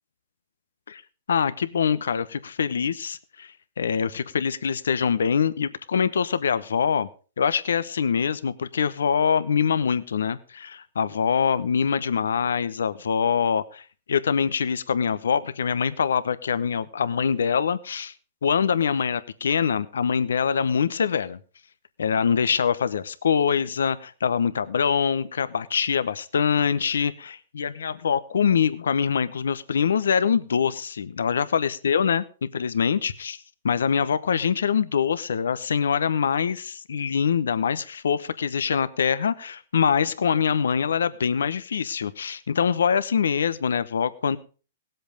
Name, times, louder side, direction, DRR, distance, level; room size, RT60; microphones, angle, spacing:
voice 1, 1.3-7.1 7.4-18.1 18.4-21.4 22.0-32.2 32.5-33.4 33.6-44.4, left 7 dB, 85° left, 14 dB, 0.9 m, -24 dB
17.5 x 7.9 x 5.1 m, 0.37 s
hypercardioid pair, 130°, 0 cm